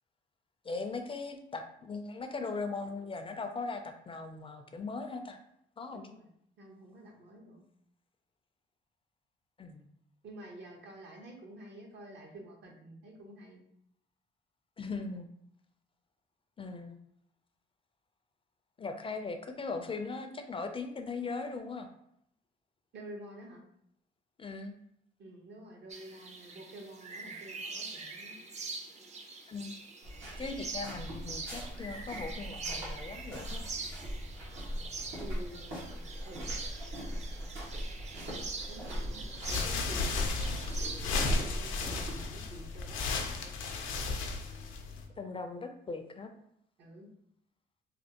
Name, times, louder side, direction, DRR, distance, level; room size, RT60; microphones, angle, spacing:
voice 1, 0.6-5.4 5.8-6.0 9.6-9.8 14.8-15.3 16.6-17.0 18.8-21.9 24.4-24.7 29.5-29.8 30.4-33.6 45.2-46.3, left 4 dB, 25° left, 6 dB, 0.3 m, -39 dB
voice 2, 5.9-7.6 10.2-13.6 22.9-23.6 25.2-28.4 35.2-36.5 38.7-43.5 46.8-47.1, right 1 dB, 65° right, 1 dB, 0.8 m, -50 dB
sound 1, 25.9-41.3, right 4 dB, 35° right, 0.5 m, -44 dB
sound 2, 30.0-42.3, equal, 80° right, 1.4 m, -41 dB
sound 3, 39.4-45.1, left 3 dB, 85° left, 0.5 m, -34 dB
3.3 x 2.4 x 2.8 m, 0.72 s
cardioid pair, 90°, 20 cm